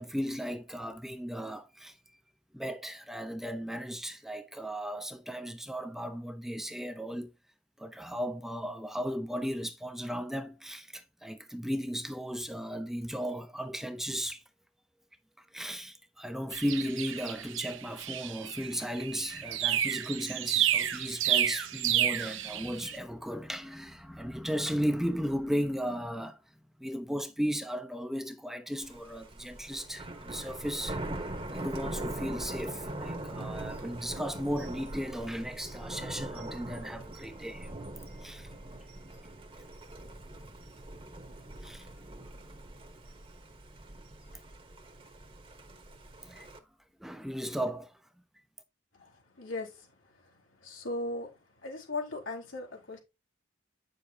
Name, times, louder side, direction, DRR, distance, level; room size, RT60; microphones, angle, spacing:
voice 1, 0.0-2.2 2.5-7.3 7.8-14.4 15.4-26.4 26.8-31.0 31.5-37.7 38.2-38.5 41.6-41.9 46.2-46.5 47.0-48.0, equal, ahead, 0.6 m, -36 dB
sound 1, 16.5-23.0, right 10 dB, 80° right, 0.8 m, -31 dB
Thunder, 28.8-46.6, right 1 dB, 30° right, 1.1 m, -42 dB
voice 2, 49.4-49.9 50.6-51.3 51.6-53.0, left 2 dB, 90° left, 3.7 m, -37 dB
8.9 x 6.7 x 2.8 m
head